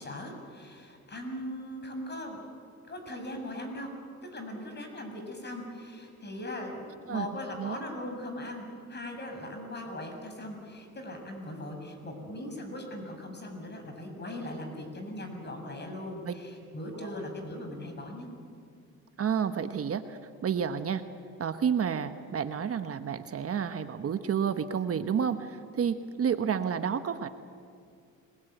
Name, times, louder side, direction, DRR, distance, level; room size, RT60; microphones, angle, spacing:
voice 1, 0.0-2.4 2.9-3.9 4.2-18.3, left 1 dB, 35° left, 4 dB, 7.0 m, -39 dB
voice 2, 19.2-21.1 21.4-27.3, right 7 dB, 50° right, 9 dB, 1.3 m, -30 dB
30.0 x 20.5 x 9.4 m, 2.3 s
cardioid pair, 90°, 30 cm